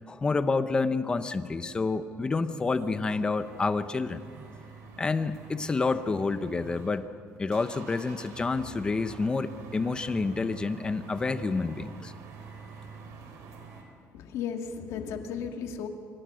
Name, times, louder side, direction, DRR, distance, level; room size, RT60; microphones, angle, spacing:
voice 1, 0.1-4.2 5.0-7.1 7.4-12.1, left 4 dB, 15° left, 11 dB, 0.9 m, -28 dB
sound 1, 0.9-1.7 2.1-3.6 3.9-6.9, right 4 dB, 50° right, 1.6 m, -51 dB
sound 2, 3.2-7.0 7.3-13.8, right 5 dB, 75° right, 4.4 m, -47 dB
voice 2, 14.1-15.9, left 7 dB, 70° left, 5 dB, 2.2 m, -35 dB
25.5 x 24.5 x 6.4 m, 2.3 s
cardioid pair, 160°, 5 cm